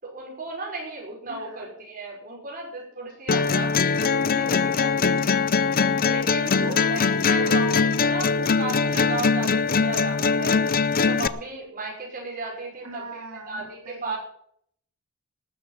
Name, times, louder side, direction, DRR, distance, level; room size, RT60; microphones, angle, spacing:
voice 1, 0.0-5.2 6.0-10.5 10.9-14.2, right 3 dB, 40° right, -1 dB, 5.4 m, -35 dB
voice 2, 1.3-1.7 6.5-7.1 12.8-14.2, right 3 dB, 90° right, 0 dB, 4.0 m, -42 dB
sound 1, 3.3-11.3, left 5 dB, 40° left, 0.5 m, -22 dB
19.0 x 7.0 x 7.5 m, 0.66 s
head